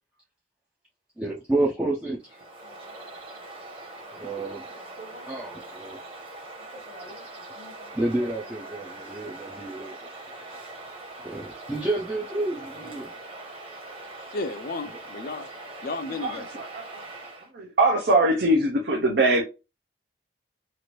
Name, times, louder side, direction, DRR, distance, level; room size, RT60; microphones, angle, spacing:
voice 1, 1.2-2.4 4.1-4.6 5.2-6.0 7.9-10.1 11.2-13.1, right 2 dB, 5° right, 0.4 m, -30 dB
Bird vocalization bird call bird song, 2.2-17.5, right 2 dB, 30° right, 1.0 m, -42 dB
voice 2, 14.3-15.5 15.8-16.6, left 3 dB, 50° left, 0.4 m, -33 dB
voice 3, 16.2-17.0 17.5-19.4, right 1 dB, 60° right, 0.6 m, -22 dB
2.9 x 2.5 x 3.0 m
head